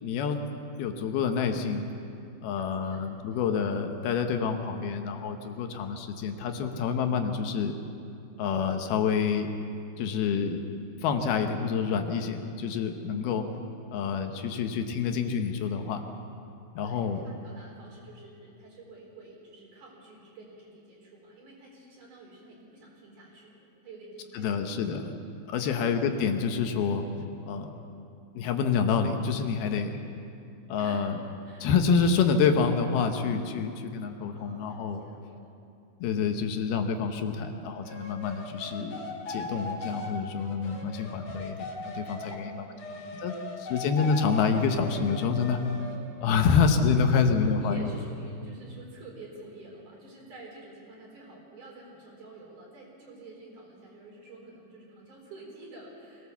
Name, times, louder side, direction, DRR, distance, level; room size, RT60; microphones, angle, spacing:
voice 1, 0.0-0.4 0.8-1.9 2.4-7.7 8.4-9.5 10.0-10.6 11.0-13.5 13.9-16.0 16.8-17.2 24.3-25.1 25.5-27.0 27.5-27.8 28.4-30.0 30.7-31.2 31.6-35.0 36.0-42.7 43.2-43.3 43.6-45.6 46.2-47.9, left 6 dB, 80° left, 5 dB, 3.0 m, -27 dB
voice 2, 2.5-3.4 16.8-24.7 25.6-25.9 30.8-31.0 31.4-31.7 34.3-35.6 42.2-43.4 46.4-46.6 47.0-56.3, right 2 dB, 55° right, -2 dB, 5.6 m, -49 dB
sound 1, 37.8-42.4 42.8-46.0, left 2 dB, 50° left, 3.4 m, -39 dB
23.0 x 17.5 x 7.1 m, 2.6 s
omnidirectional pair, 4.5 m